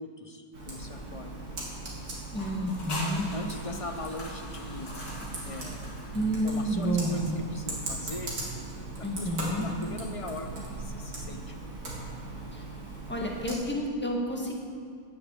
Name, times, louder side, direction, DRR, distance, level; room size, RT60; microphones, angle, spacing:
voice 1, 0.0-1.4 3.3-4.9 5.4-5.9 6.3-8.3 8.9-11.6, left 2 dB, 30° left, 6 dB, 0.7 m, -41 dB
Computer keyboard, 0.5-13.5, right 2 dB, 85° right, 3.1 m, -39 dB
sound 1, 2.3-6.9, left 1 dB, 85° left, 2.7 m, -42 dB
voice 2, 2.3-3.3 6.1-7.2 9.0-9.7 12.5-12.6 13.1-14.5, equal, 5° left, -1 dB, 1.7 m, -30 dB
10.5 x 9.7 x 8.3 m, 2.3 s
omnidirectional pair, 1.6 m